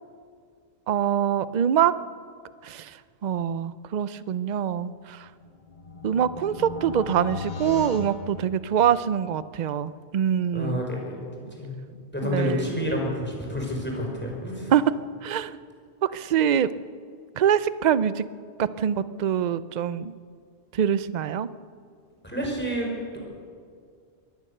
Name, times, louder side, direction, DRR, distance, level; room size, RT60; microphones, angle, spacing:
voice 1, 0.9-2.0 2.6-2.9 3.2-5.3 6.0-10.8 12.2-12.6 14.7-14.8 15.2-15.6 16.0-16.7 17.4-18.2 18.6-20.1 20.7-21.5, right 9 dB, 50° right, 15 dB, 0.6 m, -24 dB
sound 1, 5.1-9.1, left 4 dB, 45° left, 1.2 m, -38 dB
voice 2, 10.5-11.2 11.6-11.7 12.1-14.7 22.2-22.9, equal, 10° left, -1 dB, 4.9 m, -29 dB
22.5 x 17.5 x 6.7 m, 2.2 s
omnidirectional pair, 1.1 m